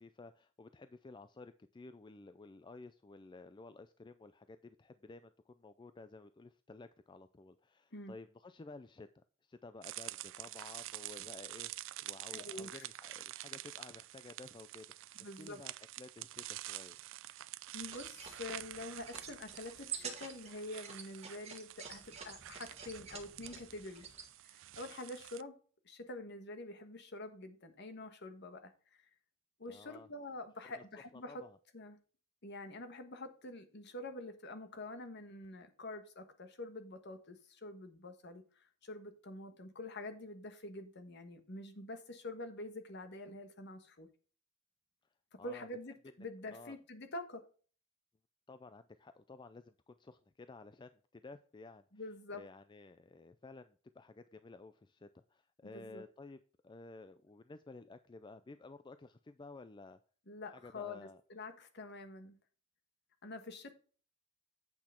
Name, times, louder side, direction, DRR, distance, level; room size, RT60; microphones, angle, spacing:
voice 1, 0.0-9.1 9.4-11.7 12.0-14.9 15.2-17.0 29.7-30.1 30.6-30.8 31.1-31.6 45.4-45.7 46.5-46.8 48.5-51.9 52.3-56.4 56.6-60.0 60.5-61.2, left 3 dB, 20° left, 0.3 m, -53 dB
sound 1, 9.8-25.4, right 16 dB, 60° right, 0.3 m, -48 dB
voice 2, 12.3-12.8 15.2-15.6 17.3-17.4 17.7-24.1 24.4-25.6 25.8-29.0 29.6-31.5 31.7-32.0 32.4-44.1 45.3-47.5 51.9-52.4 55.6-56.0 60.3-62.4 63.2-63.7, left 2 dB, 55° left, 1.3 m, -47 dB
sound 2, 17.8-24.3, right 7 dB, 30° right, 1.6 m, -49 dB
8.5 x 5.9 x 4.4 m
head